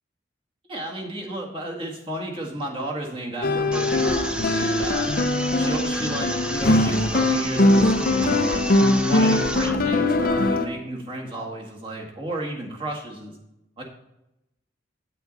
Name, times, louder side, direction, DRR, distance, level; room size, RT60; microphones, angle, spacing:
voice 1, 0.7-5.1 5.5-8.6 9.0-13.4 13.8-13.9, right 1 dB, 30° right, -1 dB, 1.7 m, -33 dB
sound 1, 3.4-10.7, left 2 dB, 50° left, 0.6 m, -21 dB
sound 2, 3.7-9.7, right 1 dB, 5° right, 0.6 m, -32 dB
8.3 x 8.2 x 4.1 m, 0.90 s
head